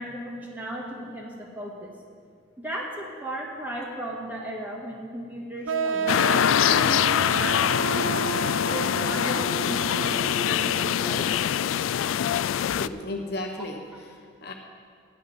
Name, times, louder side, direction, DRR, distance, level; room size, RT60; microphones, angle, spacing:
voice 1, 0.0-1.9 2.6-6.3 6.8-8.2 8.7-11.3, equal, 10° right, -3 dB, 2.0 m, -36 dB
sound 1, 5.7-11.2, right 4 dB, 80° right, 0.7 m, -31 dB
sound 2, 6.1-12.9, left 10 dB, 85° left, 0.3 m, -24 dB
voice 2, 12.6-14.5, left 2 dB, 55° left, 2 dB, 1.1 m, -35 dB
12.0 x 6.4 x 9.6 m, 2.2 s
head